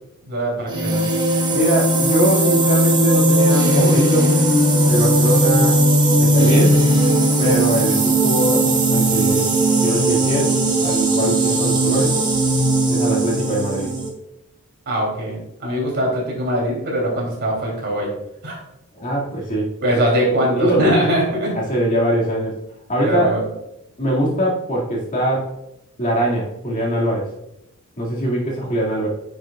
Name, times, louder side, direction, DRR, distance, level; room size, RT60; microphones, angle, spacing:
voice 1, 0.3-1.1 14.9-18.1 18.4-18.6 19.8-21.5 23.0-23.5, equal, 55° right, -2 dB, 3.1 m, -21 dB
sound 1, 0.7-14.1, right 1 dB, 20° right, 1.3 m, -17 dB
voice 2, 1.5-4.3 4.9-5.8 6.1-6.8 7.4-8.7 8.9-9.5 9.8-10.6 10.8-12.2 12.9-13.9 18.9-19.7 20.4-20.9 21.5-22.6 22.9-23.4 24.0-25.5 26.0-27.3 28.0-29.1, right 1 dB, 40° left, -4 dB, 2.2 m, -22 dB
9.8 x 6.4 x 2.4 m, 0.82 s
head